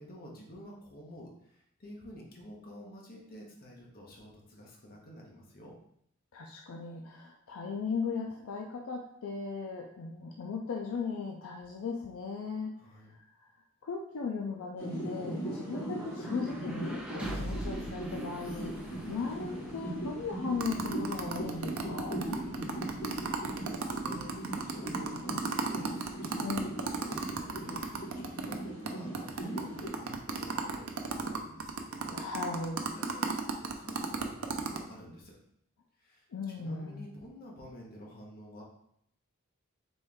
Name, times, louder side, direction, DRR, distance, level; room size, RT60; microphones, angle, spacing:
voice 1, 0.0-5.7 12.8-13.1 22.4-32.2 32.7-35.4 36.0-38.6, equal, 45° left, -2 dB, 1.1 m, -50 dB
voice 2, 6.3-12.8 13.1-13.5 13.8-22.2 26.4-26.7 32.1-32.9 36.3-37.1, left 4 dB, 75° left, 1 dB, 0.4 m, -37 dB
sound 1, 14.2-26.3, equal, 5° right, 0.6 m, -46 dB
sound 2, 14.8-29.9, right 1 dB, 30° left, 1.7 m, -39 dB
sound 3, 20.6-28.6 28.9-29.0 29.1-34.8, right 4 dB, 75° right, 0.5 m, -34 dB
4.4 x 3.2 x 3.5 m, 0.73 s
head